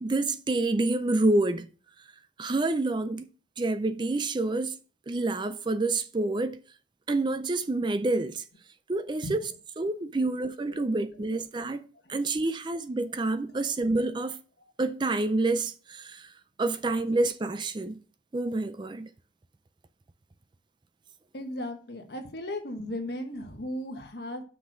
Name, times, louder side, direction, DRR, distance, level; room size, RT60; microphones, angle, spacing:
voice 1, 0.0-1.7 2.4-3.3 3.6-4.8 5.1-6.6 7.1-8.4 8.9-9.5 9.8-14.4 14.8-16.3 16.6-18.0 18.3-19.1, right 2 dB, 25° right, 0.4 m, -28 dB
voice 2, 21.3-24.4, left 1 dB, 60° left, 1.4 m, -36 dB
6.1 x 6.0 x 4.9 m
head